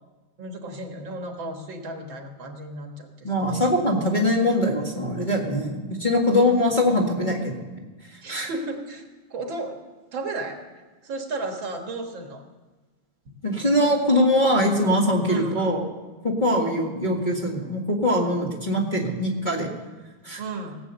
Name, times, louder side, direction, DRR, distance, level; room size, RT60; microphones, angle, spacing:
voice 1, 0.4-3.6 6.4-6.6 8.2-9.8 10.1-10.6 11.0-12.4 15.3-15.6 20.4-20.8, right 2 dB, 70° right, 3 dB, 2.2 m, -34 dB
voice 2, 3.2-7.7 8.3-8.5 13.4-15.8 16.2-19.7 20.2-20.4, left 1 dB, 25° left, -2 dB, 1.8 m, -22 dB
18.0 x 8.3 x 6.7 m, 1.2 s
omnidirectional pair, 2.3 m